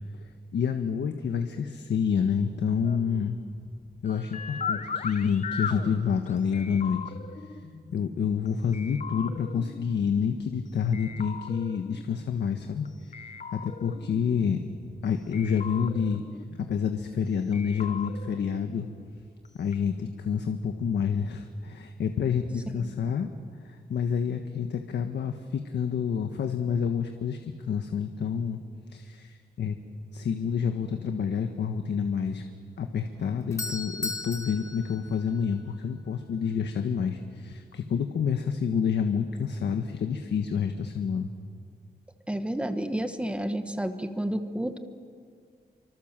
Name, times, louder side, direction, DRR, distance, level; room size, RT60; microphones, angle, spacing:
voice 1, 0.2-3.4 4.0-7.6 7.9-14.6 15.0-16.2 16.6-18.9 19.6-23.3 23.6-28.6 28.9-29.8 30.1-32.4 32.8-41.3, left 7 dB, 80° left, 6 dB, 1.5 m, -28 dB
sound 1, 2.8-8.5 8.7-10.6 10.9-12.9 13.1-15.1 15.3-17.2 17.5-19.5 19.7-19.8, left 6 dB, 45° left, 1.1 m, -39 dB
Doorbell, 33.1-36.0, left 3 dB, 15° left, 1.2 m, -37 dB
voice 2, 42.3-44.8, right 1 dB, 5° right, 8 dB, 1.2 m, -30 dB
29.0 x 25.0 x 7.5 m, 2.1 s
wide cardioid pair, 170°, 18 cm